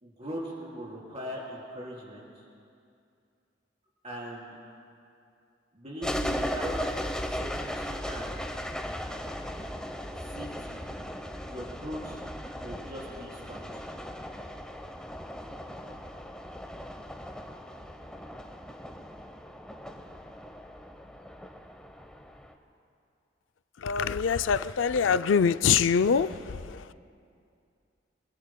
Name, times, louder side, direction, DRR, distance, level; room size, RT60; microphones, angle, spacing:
voice 1, 0.0-2.4 4.0-4.6 5.7-6.9 7.3-8.6 10.3-10.8 11.4-12.2 12.6-13.8, equal, 35° right, -4 dB, 3.9 m, -40 dB
sound 1, 6.0-22.5, equal, 5° left, 0.8 m, -37 dB
voice 2, 23.8-26.8, left 6 dB, 80° left, 13 dB, 0.4 m, -24 dB
25.5 x 21.5 x 2.2 m, 2.5 s
head